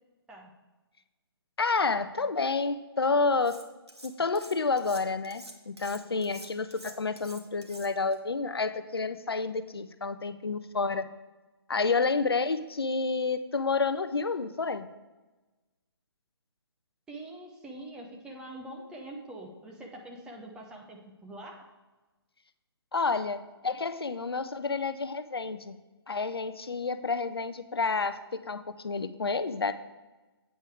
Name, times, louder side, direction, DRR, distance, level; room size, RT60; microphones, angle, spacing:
voice 1, 1.6-3.6 4.0-11.1 11.7-14.9 22.9-25.7 26.1-29.7, left 4 dB, 65° left, 11 dB, 0.6 m, -29 dB
Cutlery silverware, 3.4-4.1 4.3-8.2, right 1 dB, 80° right, 1.2 m, -47 dB
voice 2, 17.1-21.6, right 1 dB, 5° right, -1 dB, 0.7 m, -44 dB
8.5 x 5.4 x 4.7 m, 1.2 s
figure-of-eight pair, 140°, 14 cm